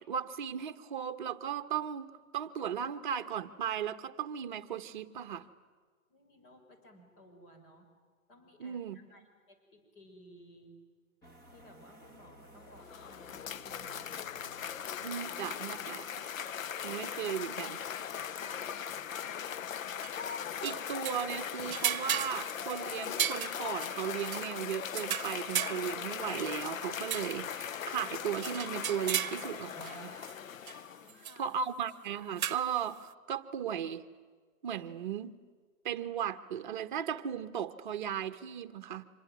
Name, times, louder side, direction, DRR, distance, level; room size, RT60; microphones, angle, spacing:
voice 1, 0.1-5.5 8.6-9.0 15.0-16.3 16.8-17.8 20.6-30.3 31.4-34.0 34.6-35.4 35.8-39.0, right 8 dB, 35° right, 10 dB, 1.1 m, -36 dB
voice 2, 6.1-7.9 8.3-10.7 11.5-14.4 18.4-19.7 31.0-31.5, left 1 dB, 40° left, 3 dB, 6.3 m, -58 dB
sound 1, 11.2-16.7, right 1 dB, 10° left, 1.0 m, -57 dB
Cheering / Applause, 12.6-31.3, left 8 dB, 70° left, 0.8 m, -39 dB
sound 2, 20.0-21.3 21.7-24.5 24.9-27.4 27.9-28.0 28.4-30.0 30.2-30.3 30.7-30.8 31.1-31.3 32.4-32.8, right 10 dB, 75° right, 0.8 m, -36 dB
25.5 x 23.0 x 9.4 m, 1.5 s
hypercardioid pair, 160°, 42 cm